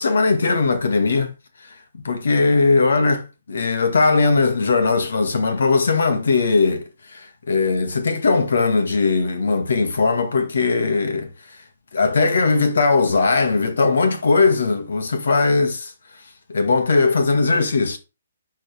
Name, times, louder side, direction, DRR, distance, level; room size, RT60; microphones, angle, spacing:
voice 1, 0.0-1.3 1.9-11.3 11.9-15.9 16.5-18.0, left 4 dB, 80° left, 1.8 m, -19 dB
11.0 x 3.8 x 3.4 m
hypercardioid pair, 165°, 0 cm